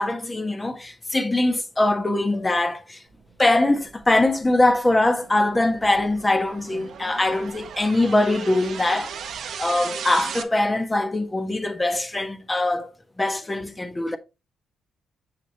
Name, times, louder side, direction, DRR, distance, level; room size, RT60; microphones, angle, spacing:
voice 1, 0.0-3.0 3.4-12.9 13.2-14.2, left 2 dB, 20° left, 1.3 m, -22 dB
sound 1, 3.5-10.4, right 7 dB, 70° right, 1.0 m, -37 dB
7.2 x 6.6 x 3.0 m
supercardioid pair, 65°, 0 cm